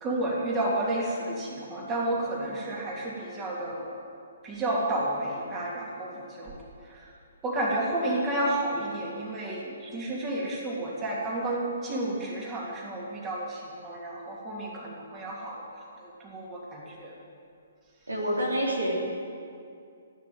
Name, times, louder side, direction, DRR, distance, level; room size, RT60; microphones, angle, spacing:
voice 1, 0.0-3.9 4.4-6.6 6.9-7.1 7.4-17.2, right 1 dB, 20° right, -4 dB, 3.0 m, -31 dB
voice 2, 18.1-18.9, equal, 80° right, -2 dB, 3.5 m, -27 dB
15.5 x 9.6 x 9.3 m, 2.4 s
figure-of-eight pair, 130°, 0 cm